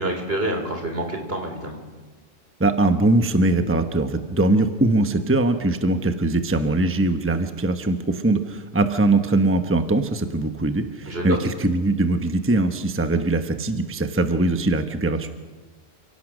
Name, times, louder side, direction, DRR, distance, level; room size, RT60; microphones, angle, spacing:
voice 1, 0.0-1.8 11.1-11.4, right 1 dB, 65° right, 4 dB, 3.9 m, -27 dB
voice 2, 2.6-15.3, right 2 dB, 15° right, 7 dB, 1.0 m, -21 dB
28.5 x 17.0 x 6.4 m, 1.3 s
omnidirectional pair, 1.1 m